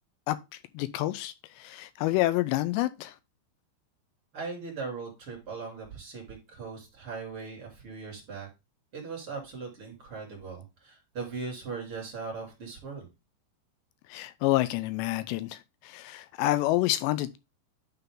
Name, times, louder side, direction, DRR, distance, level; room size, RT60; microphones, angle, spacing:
voice 1, 0.3-3.2 14.1-17.4, left 16 dB, 85° left, 2.6 m, -28 dB
voice 2, 4.3-8.5 8.9-13.1, right 4 dB, 35° right, 3.2 m, -39 dB
11.0 x 3.8 x 3.7 m
omnidirectional pair, 5.2 m